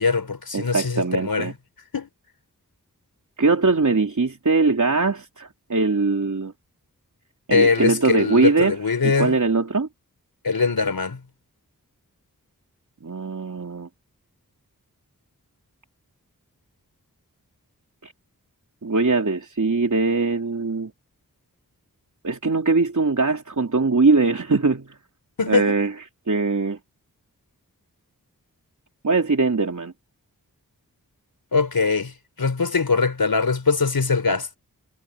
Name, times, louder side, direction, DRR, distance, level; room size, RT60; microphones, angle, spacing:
voice 1, 0.0-1.5 1.9-2.1 7.5-9.4 10.4-11.2 25.4-25.7 31.5-32.1 32.4-34.5, left 4 dB, 80° left, 4.3 m, -22 dB
voice 2, 0.5-1.5 3.4-6.5 7.5-8.8 9.0-9.9 13.0-13.9 18.0-18.1 18.8-20.9 22.2-24.9 25.5-25.9 26.3-26.8 29.0-29.9, right 3 dB, 55° right, 3.3 m, -21 dB
wide cardioid pair, 60°, 35 cm